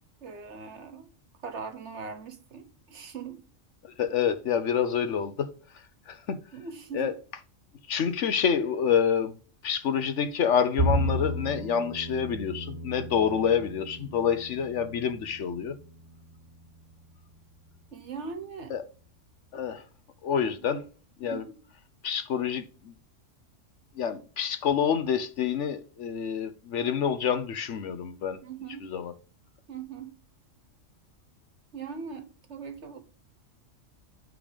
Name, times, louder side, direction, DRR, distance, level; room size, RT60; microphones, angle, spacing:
voice 1, 0.2-1.1 1.4-3.4 6.5-7.1 17.9-18.7 20.7-20.8 21.2-21.5 28.4-28.9 29.7-30.1 31.7-32.2 32.5-33.0, right 5 dB, 60° right, 1.4 m, -40 dB
voice 2, 4.0-5.5 6.1-6.4 6.9-7.1 7.9-9.3 9.6-15.8 18.7-18.8 19.5-19.8 20.2-20.8 21.2-21.4 22.0-22.9 24.0-28.4 28.8-29.1, left 7 dB, 70° left, 1.1 m, -27 dB
Bowed string instrument, 10.8-17.1, right 1 dB, 35° right, 1.4 m, -33 dB
8.7 x 3.8 x 4.9 m
omnidirectional pair, 1.3 m